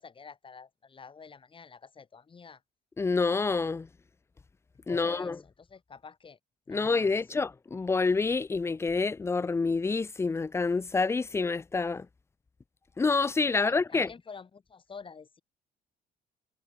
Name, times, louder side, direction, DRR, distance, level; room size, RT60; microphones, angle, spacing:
voice 1, 0.0-2.6 4.9-6.4 6.7-7.2 13.5-15.4, left 5 dB, 30° left, 6.7 m, -48 dB
voice 2, 3.0-3.9 4.9-5.4 6.7-12.1 13.0-14.1, left 4 dB, 15° left, 0.4 m, -27 dB
cardioid pair, 110°, 17 cm